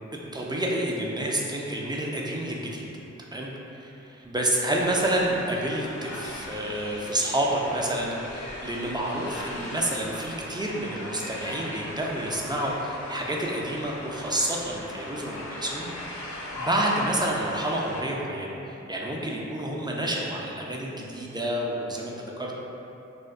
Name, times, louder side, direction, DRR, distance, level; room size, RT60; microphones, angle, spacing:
voice 1, 0.3-2.8 3.3-15.9 16.3-22.6, right 1 dB, 15° right, -3 dB, 0.3 m, -29 dB
sound 1, 4.7-18.0, left 1 dB, 70° left, 0.5 m, -38 dB
2.5 x 2.1 x 2.4 m, 2.9 s
cardioid pair, 45°, 30 cm